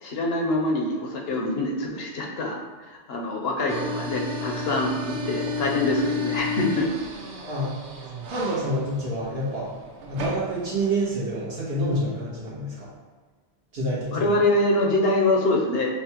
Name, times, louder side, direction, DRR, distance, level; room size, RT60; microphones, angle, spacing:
voice 1, 0.0-6.9 14.1-15.9, left 1 dB, 70° left, 0 dB, 0.8 m, -25 dB
sound 1, 3.7-11.4, left 3 dB, 90° right, 0.9 m, -32 dB
voice 2, 7.4-7.8 8.2-9.7 10.1-12.9 13.7-14.4, right 1 dB, 65° right, -7 dB, 1.3 m, -28 dB
5.5 x 2.3 x 2.9 m, 1.4 s
omnidirectional pair, 1.1 m